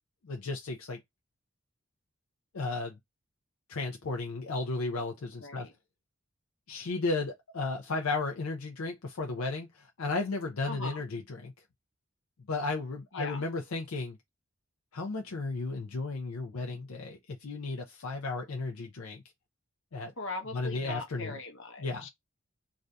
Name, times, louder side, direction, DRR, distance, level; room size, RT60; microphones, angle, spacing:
voice 1, 0.2-1.0 2.5-3.0 3.7-5.7 6.7-11.5 12.5-14.2 14.9-19.2 19.9-20.1 20.5-21.4 21.8-22.1, left 3 dB, 75° left, 0.5 m, -34 dB
voice 2, 5.4-5.7 10.6-11.0 13.1-13.4 20.2-22.1, left 2 dB, 60° left, 0.9 m, -40 dB
2.6 x 2.4 x 3.3 m
head